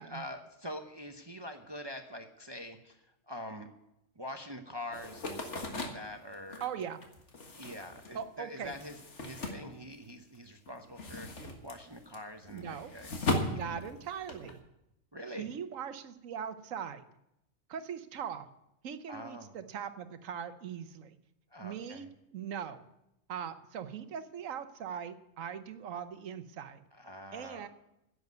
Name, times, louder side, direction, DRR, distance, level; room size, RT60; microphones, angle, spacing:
voice 1, 0.0-3.7 4.2-6.6 7.5-13.1 13.5-13.8 15.1-15.5 19.1-19.6 21.5-22.1 26.9-27.7, left 1 dB, 25° right, 6 dB, 0.7 m, -45 dB
sound 1, 4.9-10.4 10.7-14.6, left 2 dB, 65° left, 1.9 m, -38 dB
voice 2, 6.6-7.0 8.1-8.7 12.5-12.9 13.5-14.6 15.4-17.0 17.7-18.5 18.8-21.2 21.6-22.1 22.3-22.8 23.3-26.8 27.3-27.7, right 8 dB, 90° right, 11 dB, 1.2 m, -40 dB
10.5 x 8.0 x 9.4 m, 0.86 s
omnidirectional pair, 1.3 m